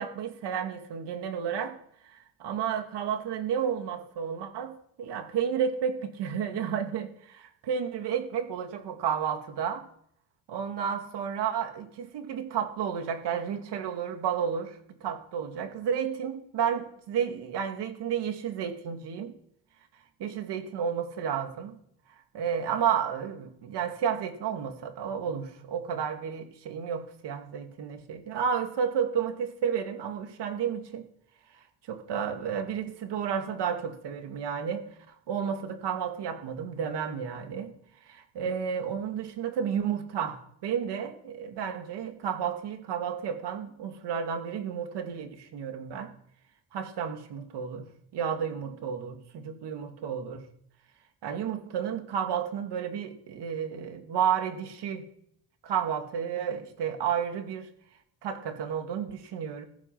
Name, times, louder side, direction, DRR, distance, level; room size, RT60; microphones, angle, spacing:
voice 1, 0.0-1.8 2.0-4.7 5.0-9.9 10.5-14.7 15.0-19.3 20.2-21.8 22.3-31.0 31.9-37.7 38.1-46.1 46.7-47.9 48.1-50.4 51.2-55.1 55.6-57.7 58.2-59.6, right 8 dB, 75° right, 6 dB, 2.5 m, -31 dB
15.5 x 14.5 x 5.9 m, 0.69 s
cardioid pair, 145°, 42 cm